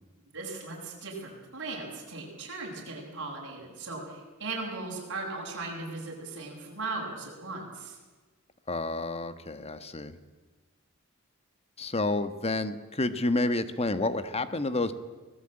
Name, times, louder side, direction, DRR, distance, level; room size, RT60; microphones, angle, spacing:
voice 1, 0.3-8.0, right 3 dB, 55° right, -3 dB, 7.3 m, -38 dB
voice 2, 8.7-10.2 11.8-14.9, left 2 dB, 25° left, 11 dB, 1.3 m, -29 dB
24.5 x 19.0 x 8.9 m, 1.3 s
head